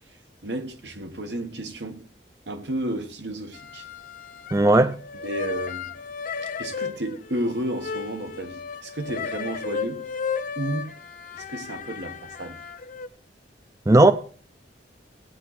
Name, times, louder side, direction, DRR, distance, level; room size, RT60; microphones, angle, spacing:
voice 1, 0.4-2.0 2.5-3.8 5.2-5.9 6.6-10.0 10.6-10.9 11.3-12.6, right 1 dB, 80° right, 1.7 m, -32 dB
sound 1, 3.5-4.7 5.0-13.1, left 5 dB, 50° left, 0.8 m, -34 dB
voice 2, 4.5-5.0 13.9-14.1, right 2 dB, 20° right, 0.5 m, -15 dB
17.0 x 9.0 x 4.2 m
head